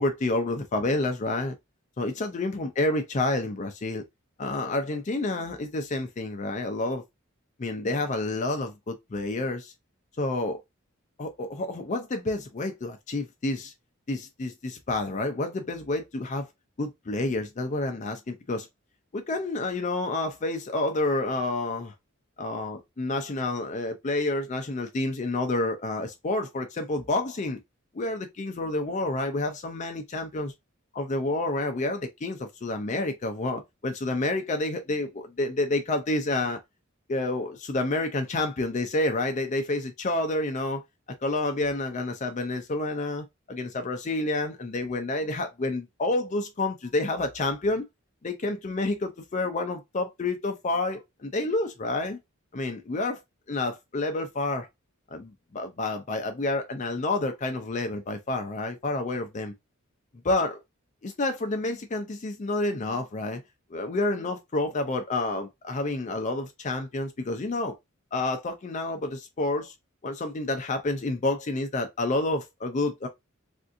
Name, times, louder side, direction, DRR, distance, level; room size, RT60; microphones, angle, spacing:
voice 1, 0.0-1.5 2.0-4.0 4.4-7.0 7.6-9.7 10.2-10.6 11.2-13.7 14.1-16.5 16.8-18.7 19.1-21.9 22.4-27.6 27.9-30.5 30.9-36.6 37.1-40.8 41.2-47.8 48.2-52.2 52.5-53.2 53.5-54.7 55.1-59.5 60.2-60.6 61.0-63.4 63.7-67.7 68.1-69.7 70.0-73.1, left 2 dB, 35° left, 0.5 m, -29 dB
3.4 x 2.6 x 2.4 m
head